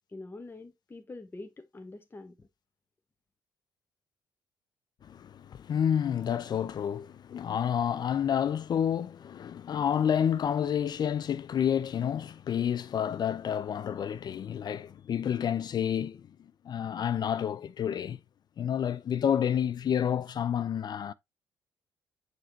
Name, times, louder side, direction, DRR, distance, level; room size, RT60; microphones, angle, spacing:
voice 1, 0.1-2.5, left 2 dB, 20° left, 0.9 m, -45 dB
voice 2, 5.0-16.2 16.6-18.2 18.6-21.1, left 8 dB, 40° left, 0.5 m, -29 dB
7.7 x 3.0 x 4.4 m
figure-of-eight pair, 45°, 11 cm